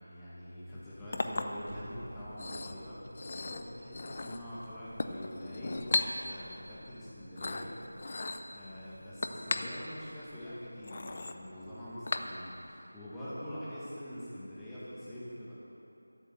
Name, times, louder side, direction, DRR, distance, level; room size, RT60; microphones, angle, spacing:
voice 1, 0.0-15.5, equal, 5° left, -12 dB, 1.8 m, -45 dB
Chink clink, 0.7-12.7, left 2 dB, 35° left, 0.6 m, -38 dB
sound 1, 1.7-6.4, right 1 dB, 30° right, 1.0 m, -53 dB
12.5 x 8.9 x 6.8 m, 2.9 s
figure-of-eight pair, 165°, 0 cm